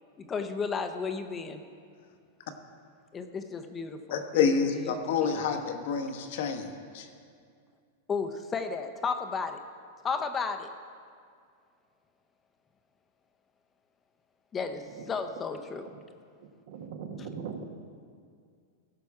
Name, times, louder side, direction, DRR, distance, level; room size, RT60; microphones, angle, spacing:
voice 1, 0.3-1.6 3.1-4.0 4.3-5.0 5.3-5.4 8.1-9.6 10.0-10.7 14.5-15.9, left 5 dB, 20° left, 8 dB, 0.6 m, -33 dB
voice 2, 4.1-7.1, left 6 dB, 65° left, 6 dB, 1.1 m, -28 dB
voice 3, 16.7-17.8, right 6 dB, 60° right, 5 dB, 1.2 m, -39 dB
16.0 x 6.0 x 4.8 m, 2.2 s
supercardioid pair, 145°, 0 cm